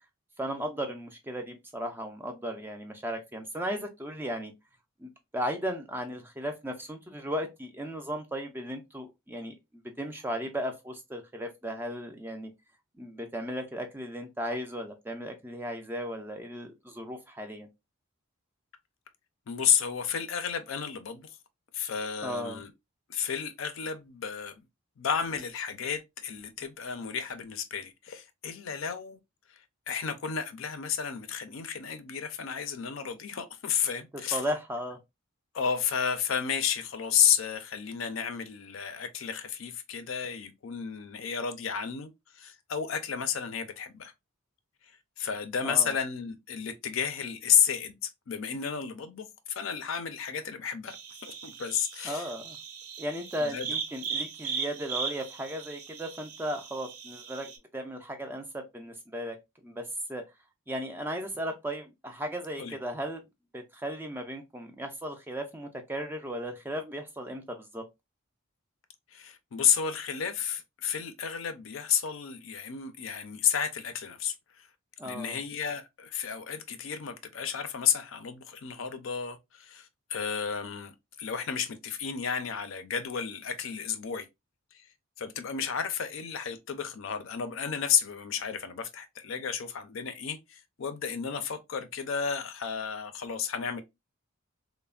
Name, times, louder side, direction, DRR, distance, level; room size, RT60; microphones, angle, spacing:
voice 1, 0.4-4.5 5.0-9.5 10.0-12.5 13.0-17.7 22.2-22.6 34.3-35.0 45.6-45.9 52.0-52.6 53.0-60.2 60.7-63.2 63.5-67.9 75.0-75.4, equal, 10° right, 0.3 m, -36 dB
voice 2, 19.5-21.3 21.7-22.7 23.1-24.6 25.0-29.2 29.9-34.4 35.5-44.1 45.2-47.9 48.3-51.0 51.2-52.2 53.4-53.7 62.6-62.8 69.1-74.7 75.0-80.9 81.2-84.3 84.7-84.8 85.2-93.8, left 7 dB, 60° left, 0.4 m, -32 dB
sound 1, 50.9-57.6, right 6 dB, 80° right, 0.5 m, -38 dB
3.1 x 2.1 x 2.3 m
head